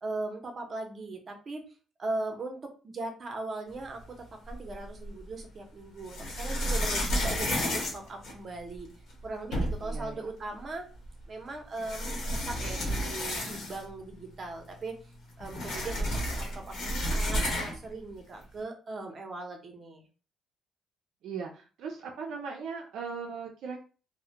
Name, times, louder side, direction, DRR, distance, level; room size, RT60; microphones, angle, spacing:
voice 1, 0.0-1.6 2.0-8.9 9.2-10.9 11.3-15.0 15.4-20.1, right 2 dB, 45° right, 3 dB, 0.7 m, -39 dB
sound 1, 4.5-5.2 6.0-8.8 9.2-9.3 9.5-10.0 11.1-11.2 11.8-14.0 14.3-14.4 14.7-17.9, equal, 75° left, 1.0 m, -31 dB
voice 2, 9.8-10.2 21.2-23.8, right 5 dB, 80° right, 1 dB, 0.4 m, -38 dB
2.3 x 2.1 x 2.8 m, 0.35 s
cardioid pair, 90°, 0 cm